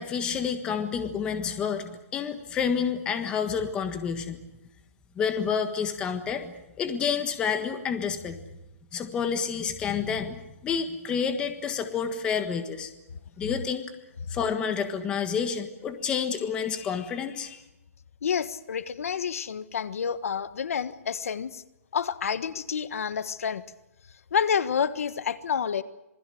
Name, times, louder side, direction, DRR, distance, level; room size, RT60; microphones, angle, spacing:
voice 1, 0.0-4.4 5.1-8.4 8.9-12.9 13.4-13.8 14.3-17.6, left 6 dB, 10° left, 8 dB, 1.5 m, -29 dB
voice 2, 18.2-21.6 21.9-23.6 24.3-25.8, left 7 dB, 70° left, 13 dB, 1.4 m, -29 dB
27.0 x 20.5 x 7.8 m, 0.94 s
hypercardioid pair, 170°, 8 cm